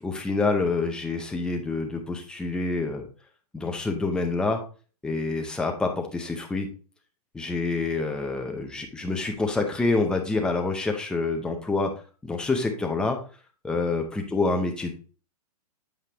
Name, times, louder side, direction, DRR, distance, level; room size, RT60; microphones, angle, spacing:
voice 1, 0.0-3.1 3.5-4.6 5.0-6.7 7.3-11.9 12.2-13.2 13.6-14.9, left 3 dB, 5° left, 3 dB, 0.6 m, -27 dB
7.6 x 5.0 x 2.8 m, 0.38 s
hypercardioid pair, 155°, 20 cm